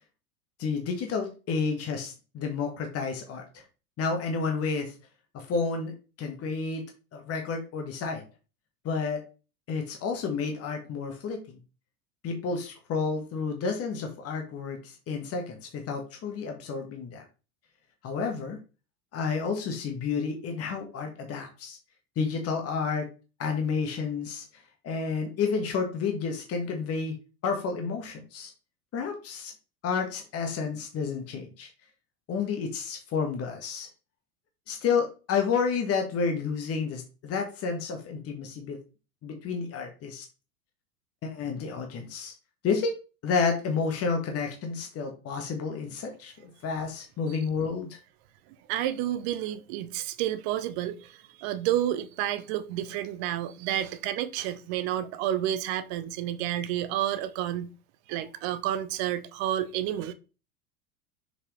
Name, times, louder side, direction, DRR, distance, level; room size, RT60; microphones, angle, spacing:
voice 1, 0.6-3.6 4.0-4.9 5.3-5.9 6.2-6.8 7.1-8.2 8.8-9.2 9.7-11.4 12.2-17.2 18.0-18.6 19.1-21.8 22.2-23.1 23.4-27.1 27.4-28.5 28.9-29.5 29.8-31.7 32.3-33.9 34.7-38.8 39.2-40.2 41.2-42.3 42.6-42.9 43.2-48.0, left 5 dB, 30° left, 1.5 m, -30 dB
voice 2, 48.7-57.7 58.1-60.1, right 12 dB, 45° right, 0.9 m, -30 dB
6.8 x 4.9 x 3.2 m
figure-of-eight pair, 80°, 44 cm